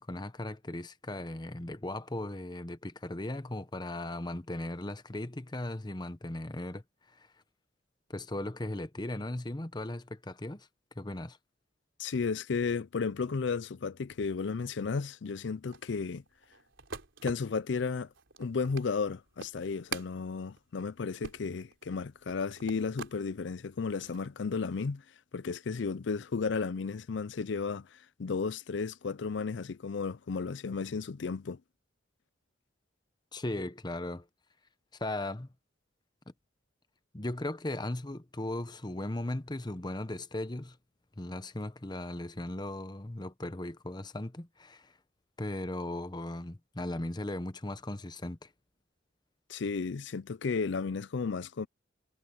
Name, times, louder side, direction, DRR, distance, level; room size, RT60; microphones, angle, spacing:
voice 1, 0.0-6.8 7.1-7.3 8.1-10.7 11.0-11.4 33.3-34.3 35.0-35.5 37.1-40.8 41.2-44.9 45.4-48.5, left 1 dB, 20° left, 0.9 m, -37 dB
voice 2, 12.0-16.2 17.2-18.1 18.4-25.0 25.3-31.6 49.5-51.7, left 5 dB, 65° left, 0.5 m, -33 dB
sound 1, 15.7-23.2 23.7-24.3, right 5 dB, 85° right, 3.6 m, -45 dB
head